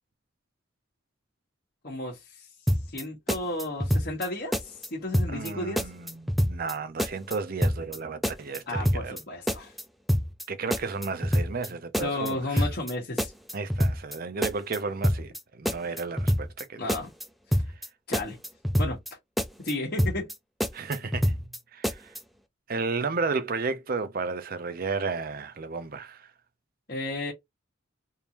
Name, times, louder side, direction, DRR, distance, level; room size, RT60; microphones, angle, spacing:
voice 1, 1.8-2.5 2.9-5.9 8.7-9.7 12.0-13.3 16.8-17.1 17.5-17.6 18.1-18.4 18.8-19.0 19.6-20.3 26.9-27.3, left 2 dB, 50° left, 1.3 m, -33 dB
sound 1, 2.7-3.0 3.3-4.3 4.5-4.9 5.1-5.5 5.8-6.7 7.0-7.3 7.6-8.0 8.2-9.2 9.5-9.8 10.1-10.4 10.7-11.7 11.9-12.3 12.6-12.9 13.2-14.2 14.4-14.8 15.0-15.4 15.6-16.6 16.9-17.2 17.5-17.9 18.1-19.1 19.4-19.7 20.0-20.3 20.6-21.6 21.8-22.2, equal, ahead, 0.4 m, -26 dB
voice 2, 5.3-9.2 10.5-12.7 13.5-16.9 20.7-22.1 22.7-26.3, right 4 dB, 45° right, 0.6 m, -33 dB
3.4 x 2.6 x 2.9 m
head